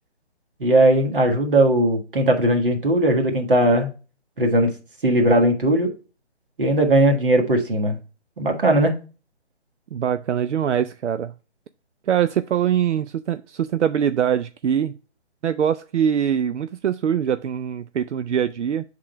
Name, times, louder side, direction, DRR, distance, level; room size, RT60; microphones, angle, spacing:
voice 1, 0.6-3.9 4.4-4.7 5.0-5.9 6.6-8.0 8.4-8.9, right 1 dB, 50° right, 1.7 m, -18 dB
voice 2, 9.9-11.3 12.1-15.0 15.4-18.8, right 9 dB, 80° right, 0.5 m, -23 dB
7.6 x 3.8 x 4.4 m
hypercardioid pair, 175°, 34 cm